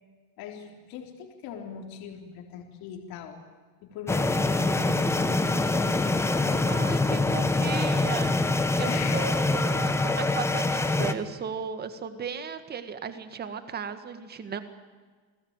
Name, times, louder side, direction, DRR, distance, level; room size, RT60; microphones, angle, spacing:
voice 1, 0.4-3.4 3.8-6.0 6.4-7.8 8.9-9.3, left 8 dB, 50° left, 3 dB, 4.0 m, -40 dB
sound 1, 4.1-11.1, left 2 dB, 5° left, 1.0 m, -25 dB
voice 2, 6.7-8.4 8.8-14.6, right 6 dB, 20° right, 10 dB, 1.9 m, -36 dB
29.5 x 20.0 x 9.1 m, 1.4 s
cardioid pair, 170°, 47 cm